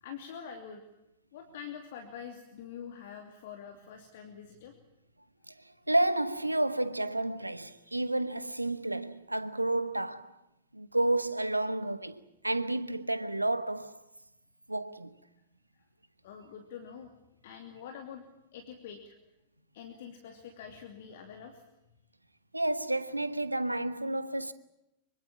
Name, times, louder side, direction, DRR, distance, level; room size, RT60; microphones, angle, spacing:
voice 1, 0.0-0.8 1.3-4.7 15.7-15.8 16.2-17.1 17.4-18.2 18.5-19.2 19.7-21.6, left 7 dB, 55° left, 2.8 m, -45 dB
voice 2, 5.5-10.4 10.7-14.0 14.7-15.2 22.5-24.5, right 1 dB, 85° right, 1.2 m, -31 dB
25.0 x 23.5 x 7.3 m
figure-of-eight pair, 90°, 0 cm